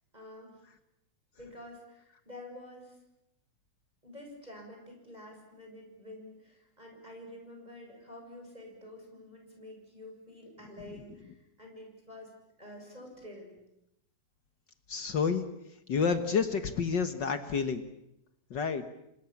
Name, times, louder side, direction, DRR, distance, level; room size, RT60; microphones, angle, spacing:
voice 1, 0.1-0.6 1.4-3.0 4.0-12.3 12.6-13.5, left 1 dB, 10° right, 1 dB, 7.1 m, -49 dB
voice 2, 14.9-15.4 15.9-17.8 18.5-18.8, left 6 dB, 80° left, 9 dB, 0.9 m, -29 dB
30.0 x 26.5 x 7.2 m, 0.82 s
omnidirectional pair, 4.1 m